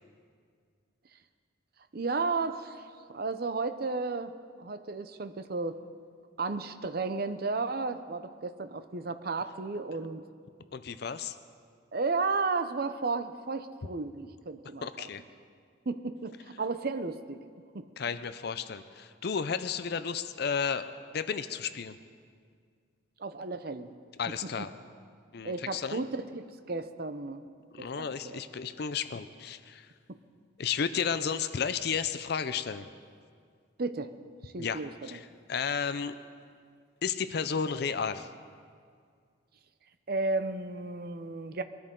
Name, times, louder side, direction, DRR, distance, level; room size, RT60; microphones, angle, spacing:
voice 1, 1.9-4.3 4.6-5.8 6.4-10.3 11.9-15.1 15.9-17.4 17.7-17.9 23.2-23.9 24.4-24.7 25.4-27.4 27.8-28.4 30.1-30.2 33.8-34.1 34.4-35.2 40.1-41.6, right 3 dB, 50° right, 10 dB, 0.6 m, -33 dB
voice 2, 10.7-11.4 14.8-15.2 18.0-20.9 21.1-22.0 24.2-24.7 25.3-26.0 27.7-29.9 30.6-32.9 34.6-36.1 37.0-38.3, left 6 dB, 55° left, 12 dB, 0.5 m, -33 dB
21.5 x 13.0 x 3.8 m, 2.1 s
head